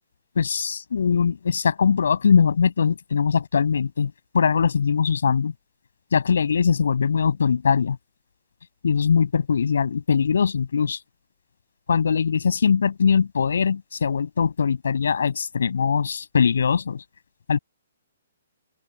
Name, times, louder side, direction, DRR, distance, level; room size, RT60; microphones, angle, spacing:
voice 1, 0.4-5.5 6.1-8.0 8.8-11.0 11.9-17.0 17.5-17.6, left 6 dB, 80° left, 7.9 m, -21 dB
open air
hypercardioid pair, 170°, 0 cm